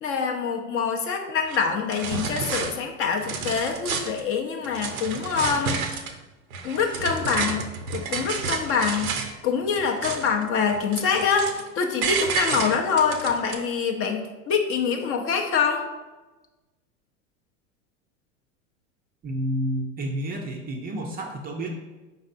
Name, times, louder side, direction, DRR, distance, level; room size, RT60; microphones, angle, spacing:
voice 1, 0.0-5.8 6.6-15.9, left 6 dB, 35° left, 3 dB, 0.5 m, -25 dB
sound 1, 1.5-1.6 1.9-2.7 3.1-4.2 4.6-6.2 6.5-9.3 9.7-10.4 10.7-11.7 12.0-13.6, right 5 dB, 85° right, 0.6 m, -30 dB
voice 2, 19.2-21.7, right 1 dB, 25° right, 2 dB, 0.4 m, -30 dB
4.6 x 4.1 x 2.5 m, 1.1 s
hypercardioid pair, 95°, 41 cm